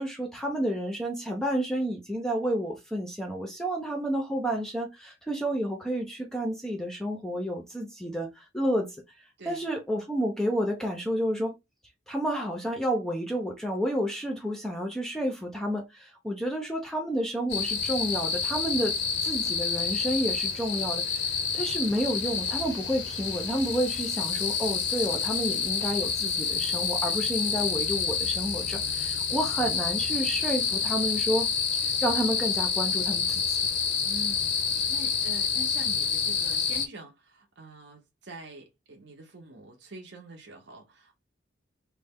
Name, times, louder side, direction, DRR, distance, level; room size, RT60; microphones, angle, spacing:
voice 1, 0.0-9.0 9.5-11.6 12.1-19.0 19.2-33.6, equal, 5° left, 0.5 m, -30 dB
sound 1, 17.5-36.9, left 6 dB, 55° left, 0.5 m, -28 dB
voice 2, 34.0-41.2, right 2 dB, 60° right, 0.7 m, -45 dB
3.1 x 2.1 x 3.5 m
head